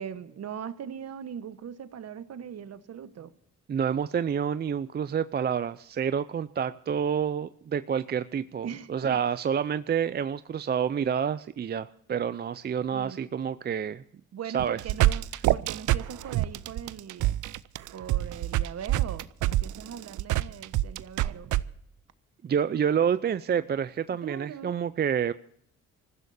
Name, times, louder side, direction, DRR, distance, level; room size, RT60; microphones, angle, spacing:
voice 1, 0.0-3.3 8.6-9.2 12.9-13.3 14.3-17.4 17.9-21.5 24.2-24.7, right 8 dB, 55° right, 12 dB, 1.2 m, -40 dB
voice 2, 3.7-14.0 14.5-14.8 22.4-25.3, right 7 dB, 35° right, 14 dB, 0.5 m, -28 dB
sound 1, 14.6-21.6, right 15 dB, 75° right, 0.6 m, -26 dB
26.0 x 15.0 x 2.7 m, 0.66 s
cardioid pair, 90°, 30 cm